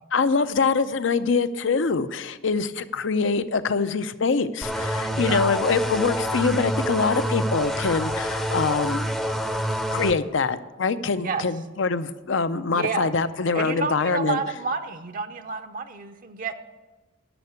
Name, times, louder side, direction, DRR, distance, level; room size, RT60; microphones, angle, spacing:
voice 1, 0.1-9.1 9.9-14.4, left 4 dB, 65° left, 13 dB, 0.6 m, -24 dB
sound 1, 4.6-10.1, equal, ahead, 0.6 m, -27 dB
voice 2, 12.7-13.1 13.5-16.5, right 4 dB, 45° right, 7 dB, 0.6 m, -29 dB
11.0 x 6.6 x 8.3 m, 1.1 s
head